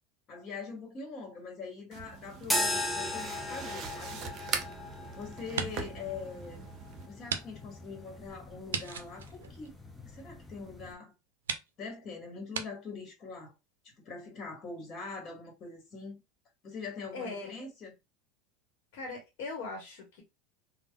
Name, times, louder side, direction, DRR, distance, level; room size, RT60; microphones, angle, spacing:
voice 1, 0.3-4.2 5.1-6.6 7.1-9.7 10.1-11.1 11.8-13.5 13.8-16.2 16.6-17.9, left 4 dB, 40° left, 1.3 m, -43 dB
sound 1, 1.9-7.1, right 6 dB, 45° right, 0.6 m, -41 dB
sound 2, 2.4-10.9, left 1 dB, ahead, 0.6 m, -38 dB
sound 3, 4.0-5.0 5.4-6.0 6.4-6.5 7.2-7.4 7.7-7.8 8.7-10.3 10.9-11.0 11.4-11.7 12.5-12.7, right 6 dB, 90° right, 0.4 m, -37 dB
voice 2, 17.1-17.6 18.9-20.2, left 3 dB, 65° left, 1.0 m, -40 dB
3.3 x 2.1 x 2.2 m
hypercardioid pair, 95°, 0 cm